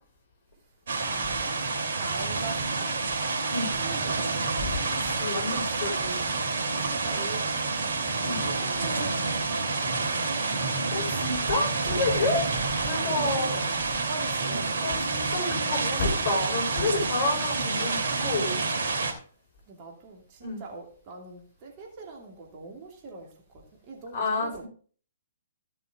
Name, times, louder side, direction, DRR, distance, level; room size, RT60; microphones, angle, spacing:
sound 1, 0.9-19.1, right 3 dB, 55° right, 2.9 m, -28 dB
voice 1, 1.1-1.5 2.0-3.3 3.7-4.7 7.0-10.6 12.2-12.4 13.0-13.8 14.1-14.8 19.7-24.6, right 3 dB, 30° right, 2.6 m, -43 dB
voice 2, 4.6-6.2 8.2-8.4 10.6-12.5 12.8-13.5 14.8-18.6 20.4-20.6 24.1-24.7, left 3 dB, 45° left, 5.8 m, -30 dB
15.0 x 7.0 x 3.7 m
figure-of-eight pair, 125°, 0 cm